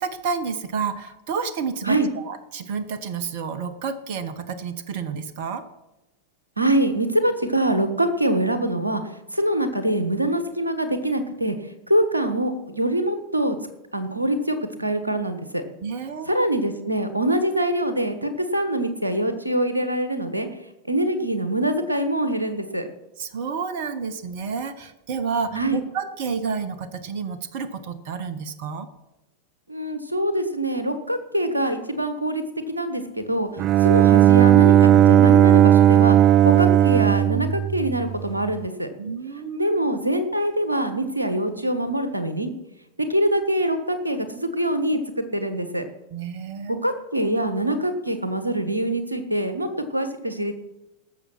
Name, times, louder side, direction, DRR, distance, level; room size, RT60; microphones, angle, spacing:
voice 1, 0.0-5.7 15.8-16.3 23.2-28.9 39.0-39.8 46.1-46.8, right 5 dB, 50° right, 13 dB, 1.0 m, -30 dB
voice 2, 6.6-9.0 9.3-11.6 11.9-13.6 13.9-15.6 16.3-20.5 20.9-22.9 25.5-25.8 29.7-33.5 33.8-36.2 36.4-38.9 39.6-42.5 43.0-45.0 45.3-45.8 46.7-50.6, right 1 dB, 85° right, 10 dB, 1.3 m, -24 dB
Bowed string instrument, 33.6-38.4, right 11 dB, 35° right, 0.3 m, -15 dB
18.5 x 7.0 x 5.9 m, 0.98 s
figure-of-eight pair, 90°, 0 cm